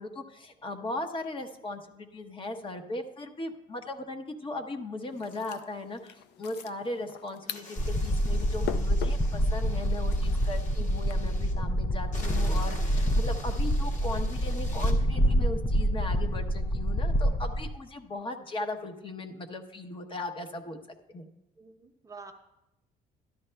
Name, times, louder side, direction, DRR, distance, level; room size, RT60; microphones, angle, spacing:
voice 1, 0.0-20.8 21.1-21.3, left 2 dB, 30° left, 5 dB, 0.9 m, -38 dB
sound 1, 5.1-11.1, left 10 dB, 85° left, 0.5 m, -43 dB
sound 2, 7.5-11.5 12.1-15.0, left 2 dB, 45° left, 1.6 m, -46 dB
sound 3, 7.8-17.7, equal, 10° left, 0.3 m, -27 dB
voice 2, 21.6-22.3, right 4 dB, 20° right, 3 dB, 0.8 m, -47 dB
12.5 x 11.0 x 2.2 m, 0.89 s
cardioid pair, 110°, 17 cm